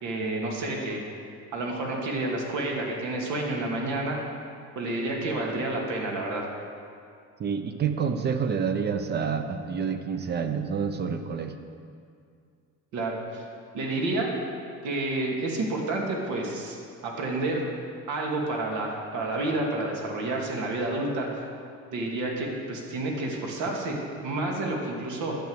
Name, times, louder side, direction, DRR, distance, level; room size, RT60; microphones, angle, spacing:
voice 1, 0.0-1.0 1.5-4.2 4.8-6.5 12.9-13.4 13.7-14.3 14.8-16.8 17.0-17.6 18.1-21.3 21.9-25.4, right 2 dB, 75° right, -1 dB, 2.4 m, -29 dB
voice 2, 7.4-11.5, right 6 dB, 35° right, 7 dB, 0.8 m, -28 dB
10.0 x 7.7 x 7.9 m, 2.3 s
cardioid pair, 150°, 30 cm